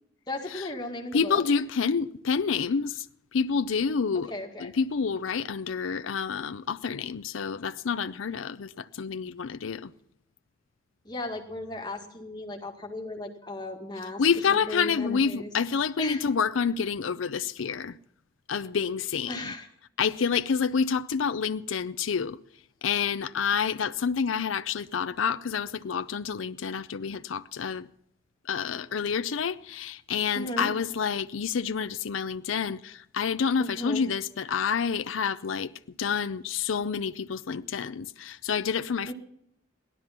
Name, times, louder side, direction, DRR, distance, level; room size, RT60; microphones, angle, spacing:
voice 1, 0.3-1.4 4.3-4.7 11.1-14.2 14.5-15.5 16.0-16.2 19.3-19.7 30.3-30.7 33.6-34.1 39.1-39.2, left 1 dB, 20° left, 1.9 m, -36 dB
voice 2, 1.1-3.1 3.3-4.3 4.6-9.9 14.2-18.0 18.5-19.5 20.0-22.4 22.8-27.9 28.5-35.7 36.0-39.1, left 6 dB, 90° left, 0.5 m, -28 dB
17.0 x 12.5 x 5.9 m
head